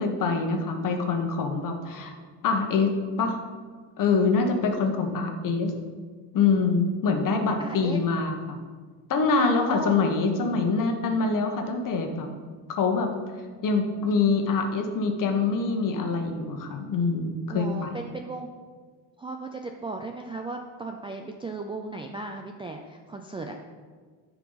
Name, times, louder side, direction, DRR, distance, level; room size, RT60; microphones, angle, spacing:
voice 1, 0.0-2.1 2.4-3.4 4.0-5.7 6.3-8.5 9.1-12.3 12.7-13.1 13.6-18.0, left 4 dB, 45° left, 4 dB, 1.3 m, -25 dB
voice 2, 7.6-8.0 9.5-10.0 17.5-18.5 19.2-23.6, right 3 dB, 15° right, 3 dB, 0.3 m, -36 dB
13.5 x 4.7 x 4.0 m, 1.5 s
cardioid pair, 135°, 45 cm